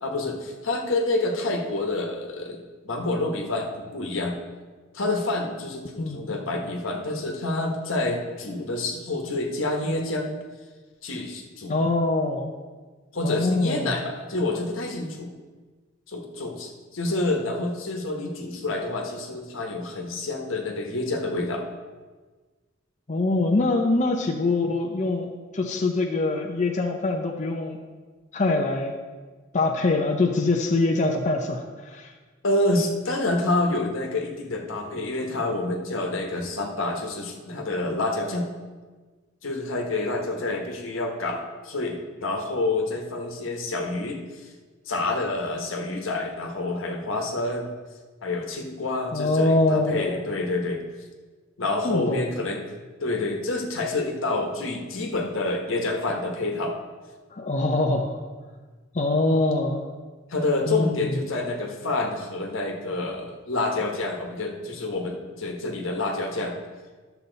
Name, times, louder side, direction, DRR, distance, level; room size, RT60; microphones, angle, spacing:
voice 1, 0.0-4.4 4.9-10.4 11.0-11.8 13.1-15.3 16.1-21.6 32.4-38.5 39.4-44.2 44.9-47.7 48.2-50.9 51.6-52.6 53.0-56.8 60.3-66.6, left 2 dB, 80° left, 2 dB, 1.3 m, -28 dB
voice 2, 6.0-6.3 11.7-12.5 13.2-13.9 23.1-27.8 28.3-28.9 29.5-32.1 49.1-50.1 51.8-52.2 57.3-58.2 58.9-59.8 60.7-61.2, left 2 dB, 35° left, 2 dB, 0.7 m, -24 dB
11.5 x 7.0 x 4.0 m, 1.4 s
head